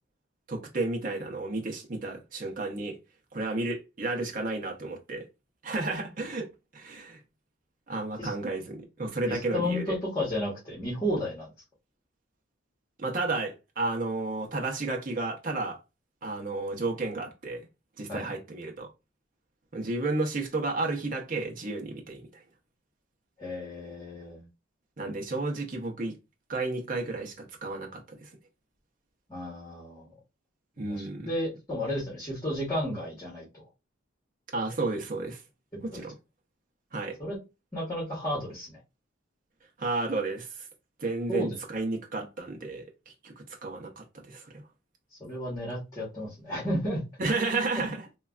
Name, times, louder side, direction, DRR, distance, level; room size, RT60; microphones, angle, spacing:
voice 1, 0.5-3.0 3.3-5.2 5.6-6.5 6.7-7.2 7.9-10.0 13.0-15.8 16.2-17.6 18.0-18.9 19.7-22.4 25.0-26.1 26.5-28.3 30.8-31.3 34.5-35.4 35.8-36.1 36.9-37.2 39.8-40.7 41.0-44.5 47.2-48.0, right 3 dB, 45° right, 0.6 m, -32 dB
voice 2, 9.3-11.5 18.1-18.3 23.4-24.4 29.3-30.1 30.8-33.6 35.9-36.0 37.2-37.4 37.7-38.8 41.3-41.6 45.2-47.0 47.7-47.9, left 1 dB, 20° left, 1.1 m, -32 dB
3.2 x 2.2 x 2.4 m
head